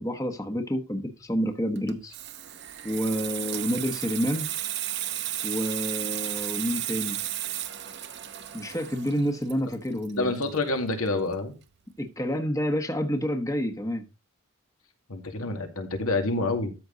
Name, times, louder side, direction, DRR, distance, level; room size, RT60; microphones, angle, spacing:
voice 1, 0.0-2.1 2.8-4.5 5.4-7.2 8.5-10.3 12.0-14.0, equal, 15° left, 1.1 m, -29 dB
Water tap faucet / Sink (filling or washing), 1.8-11.1 11.4-11.6, right 13 dB, 50° right, 0.9 m, -34 dB
voice 2, 10.2-11.5 15.1-16.7, left 2 dB, 80° left, 2.4 m, -27 dB
13.5 x 6.2 x 4.0 m
head